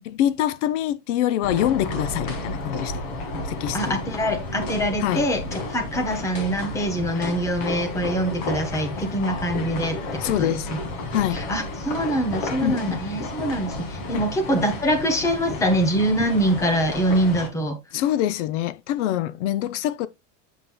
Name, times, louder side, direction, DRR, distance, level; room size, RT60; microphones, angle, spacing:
voice 1, 0.1-2.9 3.4-4.0 5.0-5.2 10.2-10.7 11.1-11.4 12.6-13.0 14.1-14.3 17.9-20.1, left 12 dB, 75° left, 0.7 m, -25 dB
sound 1, 1.4-17.5, left 2 dB, 45° left, 2.1 m, -32 dB
voice 2, 3.7-10.8 11.3-17.8, right 1 dB, 10° left, 0.9 m, -24 dB
7.8 x 7.2 x 2.3 m
supercardioid pair, 180°, 37 cm